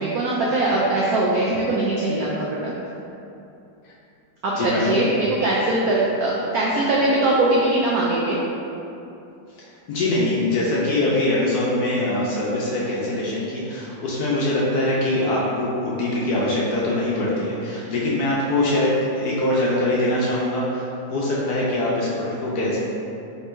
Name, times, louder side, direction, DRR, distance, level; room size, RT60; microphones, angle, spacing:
voice 1, 0.0-2.7 4.4-8.4, right 2 dB, 90° right, -4 dB, 0.8 m, -21 dB
voice 2, 4.5-5.0 9.6-22.8, left 1 dB, 70° left, -6 dB, 1.0 m, -23 dB
3.4 x 2.9 x 4.3 m, 2.8 s
omnidirectional pair, 2.1 m